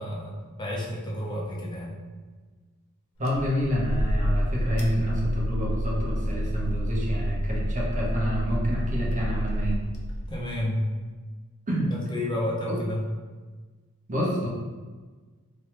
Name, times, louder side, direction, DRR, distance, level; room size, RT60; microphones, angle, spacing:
voice 1, 0.0-2.0 10.3-10.9 11.9-13.0, left 1 dB, 20° left, -4 dB, 0.5 m, -31 dB
sound 1, 3.2-10.6, equal, 70° left, 0.5 m, -29 dB
voice 2, 3.2-9.8 11.7-11.9 12.7-12.8 14.1-14.5, equal, 35° right, -4 dB, 0.8 m, -28 dB
3.3 x 2.2 x 2.8 m, 1.4 s
head